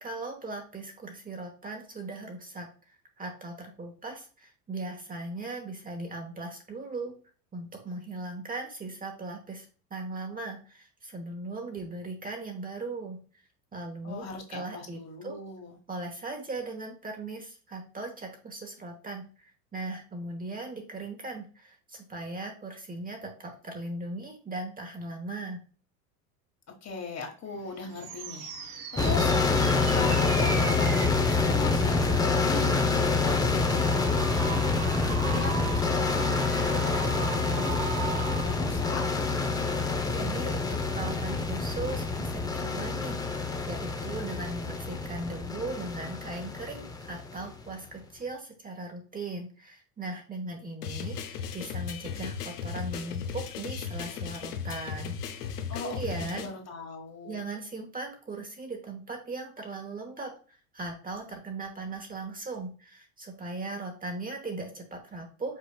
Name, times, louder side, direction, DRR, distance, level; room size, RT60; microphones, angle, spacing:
voice 1, 0.0-2.7 3.2-7.1 7.5-9.7 9.9-13.2 13.7-15.4 15.9-25.6 40.1-55.5 55.8-56.5 57.2-65.6, right 2 dB, 20° right, 3 dB, 1.0 m, -38 dB
voice 2, 14.0-15.8 26.8-32.9 33.2-39.1 55.7-57.4, left 4 dB, 35° left, 3 dB, 1.4 m, -39 dB
sound 1, 27.5-39.9, right 7 dB, 75° right, 1.1 m, -39 dB
sound 2, 29.0-47.6, left 4 dB, 10° left, 0.5 m, -27 dB
sound 3, 50.8-56.5, left 7 dB, 85° left, 0.8 m, -36 dB
5.6 x 4.0 x 2.2 m, 0.38 s
hypercardioid pair, 95°, 45 cm